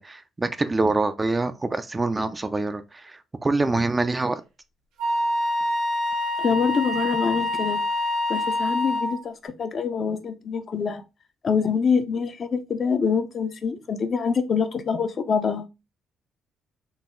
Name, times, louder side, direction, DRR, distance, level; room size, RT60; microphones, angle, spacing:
voice 1, 0.0-4.4, right 3 dB, 20° right, 0.4 m, -25 dB
Wind instrument woodwind instrument, 5.0-9.2, left 1 dB, 85° right, 0.8 m, -26 dB
voice 2, 6.4-7.8 8.3-11.0 11.4-15.7, left 6 dB, 50° left, 0.5 m, -25 dB
3.9 x 2.0 x 3.6 m
cardioid pair, 90°, 0 cm